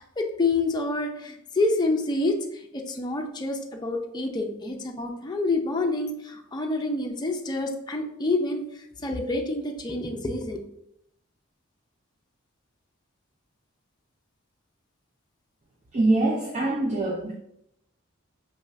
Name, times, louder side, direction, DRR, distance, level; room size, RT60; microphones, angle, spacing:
voice 1, 0.0-8.6 9.0-10.6, left 2 dB, 20° left, 2 dB, 0.5 m, -27 dB
voice 2, 15.9-17.3, right 2 dB, 35° right, 0 dB, 0.5 m, -24 dB
5.3 x 2.5 x 3.1 m, 0.77 s
head